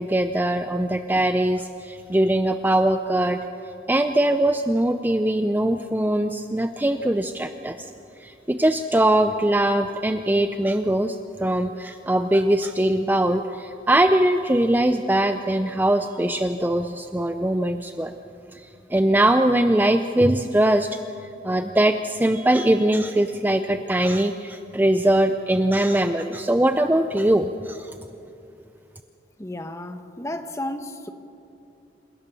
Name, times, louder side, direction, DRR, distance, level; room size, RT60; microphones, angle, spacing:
voice 1, 0.0-3.4 3.9-7.8 8.2-11.2 11.4-18.1 18.9-20.9 21.4-27.9, right 1 dB, 10° right, 8 dB, 0.5 m, -21 dB
voice 2, 29.4-31.1, left 1 dB, 15° left, 7 dB, 1.1 m, -33 dB
28.0 x 17.0 x 6.9 m, 2.7 s
head